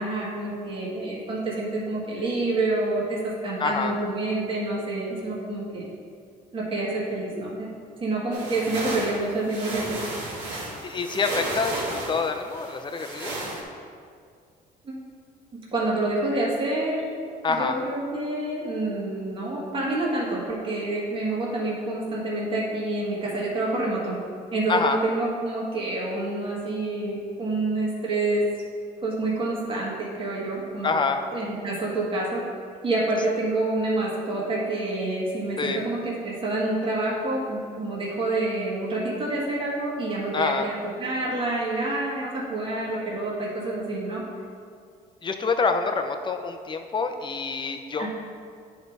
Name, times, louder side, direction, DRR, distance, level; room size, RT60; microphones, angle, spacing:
voice 1, 0.0-5.9 6.5-7.7 8.0-10.1 14.8-14.9 15.7-17.1 17.5-24.2 24.5-28.4 29.0-30.9 31.3-32.4 32.8-44.2 48.0-48.1, right 2 dB, 30° right, -5 dB, 1.6 m, -27 dB
voice 2, 3.6-3.9 10.8-13.3 17.4-17.8 24.7-25.0 30.8-31.2 35.6-35.8 40.3-40.7 45.2-48.1, left 4 dB, 30° left, 6 dB, 0.6 m, -26 dB
sound 1, 8.3-13.6, right 1 dB, 85° right, 1.9 m, -33 dB
9.5 x 4.0 x 4.6 m, 2.2 s
cardioid pair, 110°, 17 cm